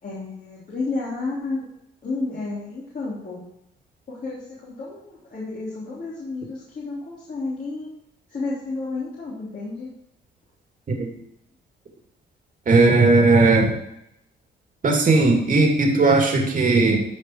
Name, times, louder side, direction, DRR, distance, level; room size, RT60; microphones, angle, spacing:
voice 1, 0.0-1.7 2.0-3.4 4.1-7.9 8.3-9.9, left 3 dB, 45° left, -6 dB, 3.6 m, -31 dB
voice 2, 12.7-13.7 14.8-17.0, right 3 dB, 40° right, 2 dB, 2.5 m, -17 dB
13.5 x 5.0 x 4.7 m, 0.79 s
cardioid pair, 90°, 20 cm